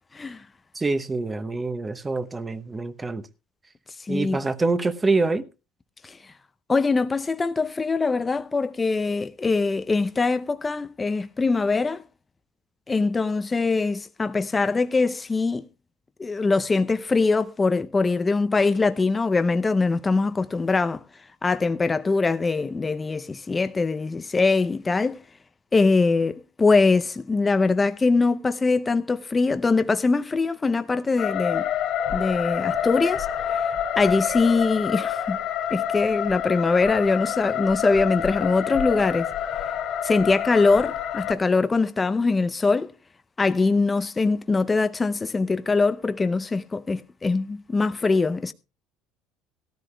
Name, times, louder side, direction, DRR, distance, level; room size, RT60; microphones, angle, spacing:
voice 1, 0.1-0.4 4.0-4.4 6.0-6.2 6.7-12.0 12.9-15.6 16.2-21.0 21.4-25.2 25.7-31.7 32.1-33.7 34.0-35.4 35.7-39.3 40.0-42.9 43.4-48.5, left 3 dB, 20° left, 0.5 m, -22 dB
voice 2, 0.7-3.3 4.1-5.5, right 3 dB, 20° right, 0.9 m, -25 dB
sound 1, 31.2-41.3, left 9 dB, 55° left, 2.5 m, -27 dB
17.5 x 13.5 x 2.2 m
supercardioid pair, 95°, 0 cm